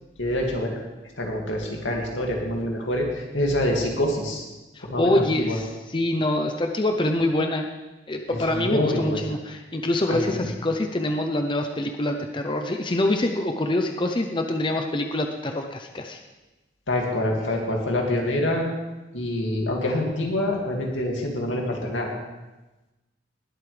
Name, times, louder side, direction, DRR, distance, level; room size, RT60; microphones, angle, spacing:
voice 1, 0.2-0.8 1.2-4.4 4.9-5.6 8.3-9.2 10.1-10.4 16.9-18.7 19.1-22.1, left 1 dB, 85° left, 0 dB, 2.4 m, -26 dB
voice 2, 4.7-7.7 8.1-16.2, left 1 dB, 25° left, 4 dB, 0.6 m, -25 dB
20.0 x 8.3 x 3.4 m, 1.1 s
head